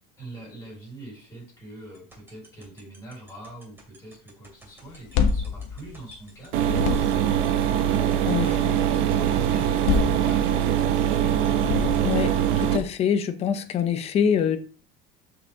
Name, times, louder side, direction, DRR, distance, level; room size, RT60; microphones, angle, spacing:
voice 1, 0.2-8.0, right 2 dB, 10° left, 4.2 m, -43 dB
sound 1, 1.9-12.8, right 2 dB, 10° right, 2.6 m, -51 dB
sound 2, 4.9-6.3 6.6-7.4 9.6-10.8 11.5-12.4, left 6 dB, 85° left, 1.3 m, -27 dB
sound 3, 6.5-12.8, right 10 dB, 70° right, 1.2 m, -22 dB
voice 2, 8.2-8.7 12.0-12.3 12.6-14.6, left 8 dB, 30° left, 0.8 m, -24 dB
12.5 x 5.0 x 3.5 m
cardioid pair, 175°, 21 cm